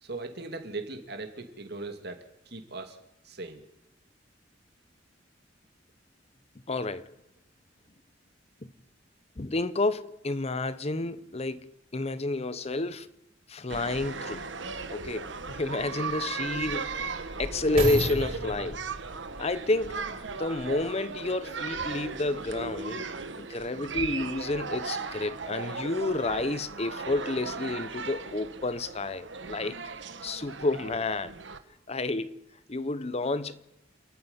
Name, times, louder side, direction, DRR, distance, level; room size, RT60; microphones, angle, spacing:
voice 1, 0.0-3.0 3.2-3.6, right 3 dB, 60° right, 2.7 m, -39 dB
voice 2, 6.7-7.1 8.6-8.7 9.4-13.1 13.5-14.4 14.9-17.0 17.4-18.8 19.4-20.0 20.4-23.1 23.4-29.8 30.2-31.3 31.9-32.3 32.7-33.6, left 2 dB, 35° left, 0.8 m, -30 dB
sound 1, 13.7-31.6, right 4 dB, 75° right, 1.4 m, -37 dB
sound 2, 15.6-20.9 21.5-21.6, right 1 dB, 35° right, 5.8 m, -35 dB
28.0 x 9.4 x 9.7 m
head